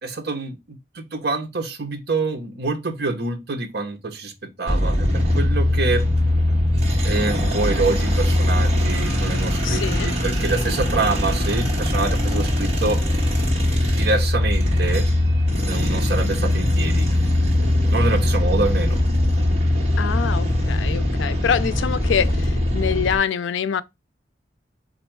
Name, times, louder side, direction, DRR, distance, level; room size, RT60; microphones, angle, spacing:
voice 1, 0.0-0.6 0.9-4.3 4.6-6.1 7.0-13.0 13.9-15.1 15.7-17.1 17.9-19.0, right 3 dB, 60° right, 0.8 m, -26 dB
sound 1, 4.7-23.2, left 1 dB, 35° right, 1.3 m, -21 dB
voice 2, 9.6-10.1 20.0-23.8, left 7 dB, 85° left, 0.4 m, -25 dB
4.2 x 2.5 x 4.5 m
head